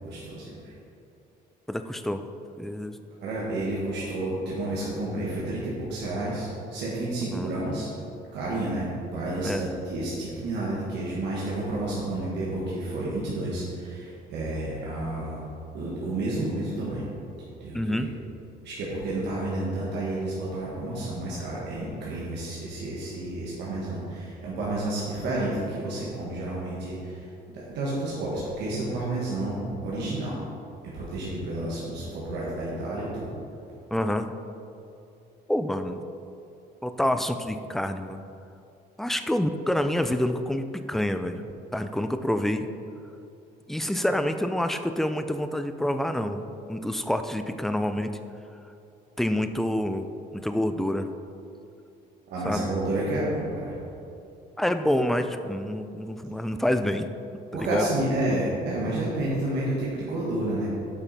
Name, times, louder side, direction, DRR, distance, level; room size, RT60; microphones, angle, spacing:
voice 1, 0.0-0.7 3.2-7.9 8.3-15.3 15.7-17.1 17.6-17.8 18.6-30.4 30.9-33.3 52.3-53.8 57.5-60.7, right 1 dB, 75° right, -6 dB, 1.6 m, -30 dB
voice 2, 1.7-2.2 2.6-3.0 7.3-7.5 9.4-9.7 17.7-18.1 33.9-34.3 35.5-36.0 36.8-38.2 39.0-41.5 41.7-42.7 43.7-48.2 49.2-50.1 50.3-51.1 52.4-52.7 54.6-57.1 57.5-57.9, left 1 dB, ahead, 9 dB, 0.3 m, -27 dB
8.0 x 5.7 x 4.2 m, 2.7 s
cardioid pair, 110°, 18 cm